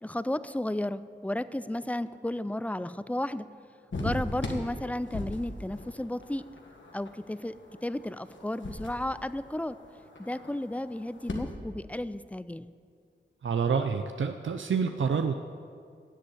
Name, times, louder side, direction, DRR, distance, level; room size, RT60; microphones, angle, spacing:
voice 1, 0.0-3.5 4.0-6.4 6.9-7.5 7.8-9.8 10.2-12.7, left 1 dB, 5° left, 14 dB, 0.4 m, -33 dB
Chicken in enclosure, 3.9-11.4, left 2 dB, 75° left, 1.6 m, -40 dB
voice 2, 13.4-15.3, right 6 dB, 80° right, 7 dB, 0.5 m, -28 dB
11.0 x 7.8 x 8.6 m, 2.2 s
wide cardioid pair, 65°, 20 cm